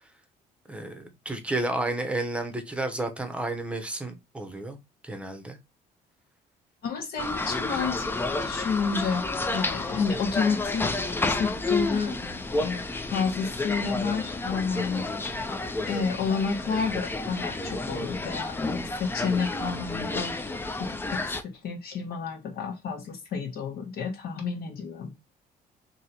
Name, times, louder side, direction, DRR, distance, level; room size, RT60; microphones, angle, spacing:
voice 1, 0.7-4.8 5.0-5.6, right 2 dB, 5° right, 0.8 m, -31 dB
voice 2, 6.8-9.2 9.5-15.1 15.4-15.6 15.9-20.3 20.8-25.1, left 5 dB, 65° left, 1.2 m, -30 dB
sound 1, 7.2-21.4, left 2 dB, 15° left, 0.4 m, -31 dB
3.0 x 2.8 x 4.2 m
cardioid pair, 110°, 17 cm